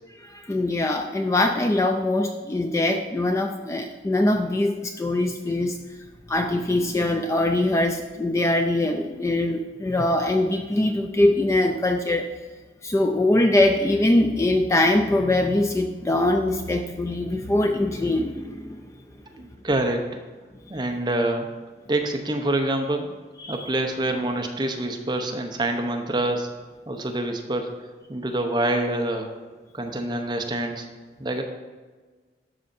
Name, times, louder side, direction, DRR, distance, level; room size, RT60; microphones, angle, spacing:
voice 1, 0.2-5.8 6.3-12.3 12.8-18.8 20.7-20.8 23.4-23.7, left 1 dB, 15° left, 5 dB, 0.3 m, -22 dB
voice 2, 19.3-20.2 20.7-21.5 21.9-23.1 23.5-26.5 26.9-27.7 28.1-29.3 29.7-30.9 31.2-31.4, right 1 dB, 25° right, 4 dB, 0.6 m, -26 dB
12.5 x 5.5 x 2.6 m, 1.3 s
head